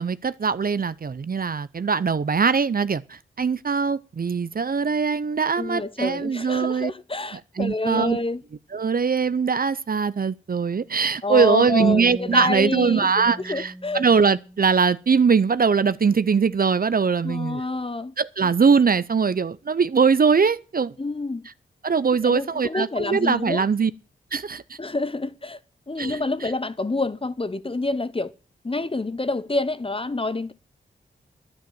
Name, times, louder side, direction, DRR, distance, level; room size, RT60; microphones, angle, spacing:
voice 1, 0.0-6.9 7.3-8.2 8.7-17.7 18.2-20.9 21.4-21.5 21.8-23.9 24.3-24.6 26.0-26.5, right 5 dB, 45° right, 0.6 m, -22 dB
voice 2, 5.6-8.4 11.2-14.1 17.2-18.1 21.0-21.4 22.2-23.6 24.8-25.6 25.9-28.3 28.6-30.5, left 2 dB, 25° left, 0.8 m, -27 dB
sound 1, 11.8-15.3, right 2 dB, 5° right, 1.9 m, -37 dB
10.0 x 8.8 x 7.4 m
cardioid pair, 45°, 21 cm